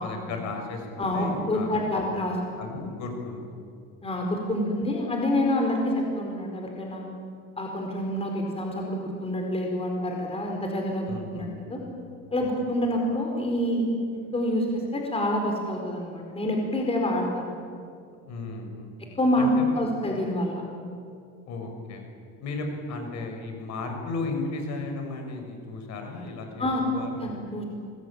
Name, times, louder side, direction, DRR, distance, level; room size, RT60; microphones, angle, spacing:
voice 1, 0.0-1.8 2.6-3.4 4.7-4.8 11.1-11.6 12.4-12.5 18.2-18.9 19.4-19.8 21.5-22.0 22.4-27.2, left 3 dB, 55° left, 4 dB, 6.3 m, -35 dB
voice 2, 1.0-2.3 4.0-7.0 7.6-11.8 12.3-13.8 14.3-17.5 19.2-20.6 26.6-27.6, left 1 dB, 20° left, 1 dB, 4.7 m, -27 dB
26.0 x 21.5 x 8.9 m, 2.4 s
cardioid pair, 130°, 33 cm